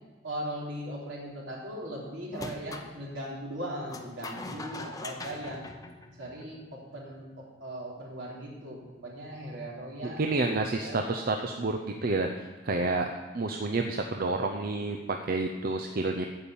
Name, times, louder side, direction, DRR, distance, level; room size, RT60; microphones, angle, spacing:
voice 1, 0.2-5.7 6.2-10.3 10.8-11.2, right 1 dB, 70° right, -3 dB, 3.4 m, -39 dB
sound 1, 2.3-2.9 3.9-6.6, left 2 dB, 20° left, 0.7 m, -41 dB
voice 2, 10.0-12.3 12.6-13.1 13.3-16.2, right 3 dB, 50° right, 4 dB, 0.6 m, -29 dB
9.6 x 7.2 x 8.5 m, 1.3 s
head